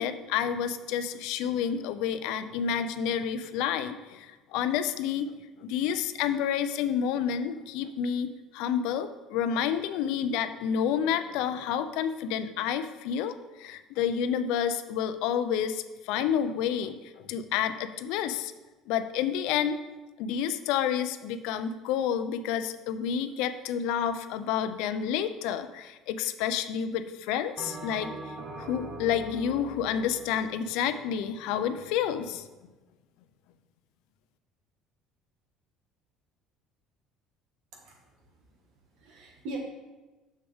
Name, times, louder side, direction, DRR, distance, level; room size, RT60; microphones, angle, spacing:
voice 1, 0.0-5.3 5.6-18.5 18.9-19.8 20.2-28.1 28.6-32.4, left 8 dB, 70° left, 11 dB, 0.4 m, -29 dB
Bell, 27.6-32.2, right 1 dB, 45° right, 1.1 m, -42 dB
voice 2, 37.7-38.3 38.9-39.6, right 2 dB, 60° right, 0 dB, 1.7 m, -42 dB
6.8 x 6.5 x 3.5 m, 1.1 s
cardioid pair, 170°, 0 cm